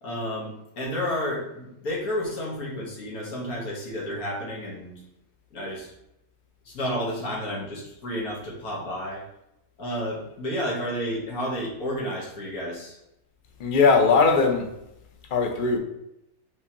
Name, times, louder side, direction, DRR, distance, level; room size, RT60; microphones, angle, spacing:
voice 1, 0.0-4.9 5.5-5.9 6.7-9.2 9.8-13.0, equal, 90° left, -3 dB, 1.8 m, -31 dB
voice 2, 13.6-14.7 15.3-15.8, left 4 dB, 50° left, 3 dB, 0.7 m, -19 dB
5.0 x 3.4 x 2.9 m, 0.84 s
omnidirectional pair, 1.5 m